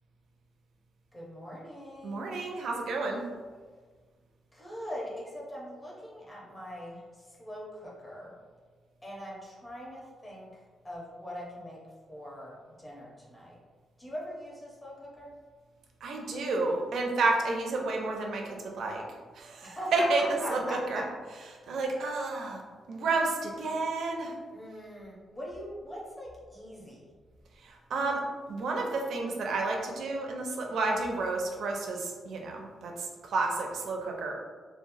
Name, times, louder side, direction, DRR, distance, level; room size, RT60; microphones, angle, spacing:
voice 1, 1.1-2.4 4.5-8.3 9.0-10.5 10.8-11.8 12.1-13.6 14.0-15.3 19.6-21.0 24.5-27.1, equal, 15° left, -5 dB, 0.7 m, -41 dB
voice 2, 2.0-3.2 16.0-19.0 19.3-20.2 20.5-21.0 21.7-22.6 22.9-24.3 27.6-28.2 28.5-34.3, right 3 dB, 70° right, 1 dB, 0.5 m, -31 dB
2.9 x 2.0 x 2.6 m, 1.5 s
cardioid pair, 125°, 0 cm